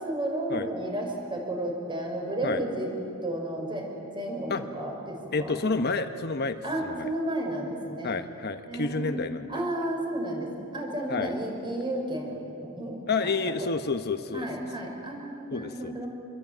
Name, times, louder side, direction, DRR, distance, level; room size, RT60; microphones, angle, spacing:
voice 1, 0.0-2.9 3.2-3.9 4.1-5.6 6.6-8.2 8.7-13.0 14.3-16.1, right 1 dB, 25° right, 1 dB, 6.2 m, -32 dB
voice 2, 5.3-7.1 8.0-9.5 11.1-11.3 13.1-14.5 15.5-16.0, left 4 dB, 50° left, 8 dB, 1.1 m, -29 dB
28.0 x 22.5 x 9.3 m, 2.8 s
head